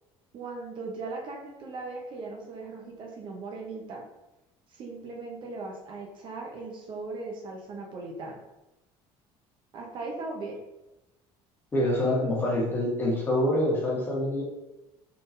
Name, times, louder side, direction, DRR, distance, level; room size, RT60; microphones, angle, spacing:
voice 1, 0.3-4.0 4.7-8.4 9.7-10.6, right 3 dB, 45° right, 0 dB, 1.0 m, -38 dB
voice 2, 11.7-14.4, left 1 dB, 20° left, -4 dB, 1.4 m, -26 dB
4.2 x 3.7 x 2.7 m, 0.99 s
cardioid pair, 130°, 11 cm